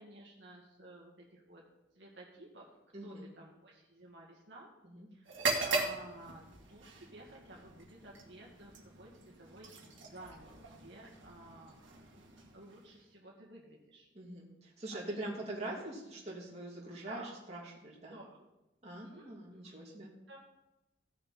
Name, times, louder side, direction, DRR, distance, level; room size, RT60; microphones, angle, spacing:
voice 1, 0.0-1.6 2.0-4.7 5.1-9.7 10.0-12.1 12.5-14.1 14.9-15.5 17.1-17.3 18.1-18.5 19.0-19.8 20.3-20.4, right 2 dB, 70° right, -2 dB, 2.0 m, -53 dB
voice 2, 2.9-3.3 4.8-5.1 14.1-18.2 18.8-20.1, right 1 dB, 35° right, -4 dB, 2.8 m, -43 dB
sound 1, 5.2-13.1, right 3 dB, 85° right, 2.0 m, -40 dB
16.0 x 6.7 x 4.3 m, 0.94 s
head